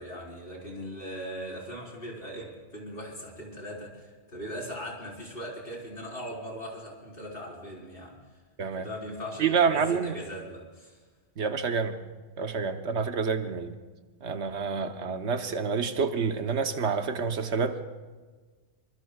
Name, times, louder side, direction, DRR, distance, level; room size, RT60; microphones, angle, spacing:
voice 1, 0.0-8.2 8.8-11.0, equal, 55° left, -3 dB, 4.7 m, -39 dB
voice 2, 9.4-10.2 11.4-12.0 12.4-13.8 14.2-17.8, right 5 dB, 85° right, 7 dB, 1.3 m, -28 dB
25.5 x 24.5 x 2.3 m, 1.4 s
omnidirectional pair, 1.1 m